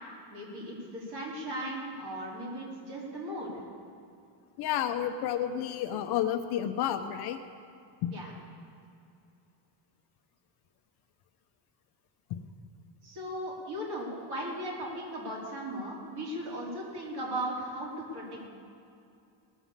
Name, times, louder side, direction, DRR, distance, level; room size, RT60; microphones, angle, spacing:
voice 1, 0.3-3.6 8.1-8.3 13.0-18.5, right 1 dB, 50° right, -4 dB, 4.4 m, -37 dB
voice 2, 4.6-7.4 8.0-8.1, left 10 dB, 50° left, 7 dB, 0.8 m, -30 dB
19.0 x 6.9 x 7.3 m, 2.5 s
cardioid pair, 170°, 49 cm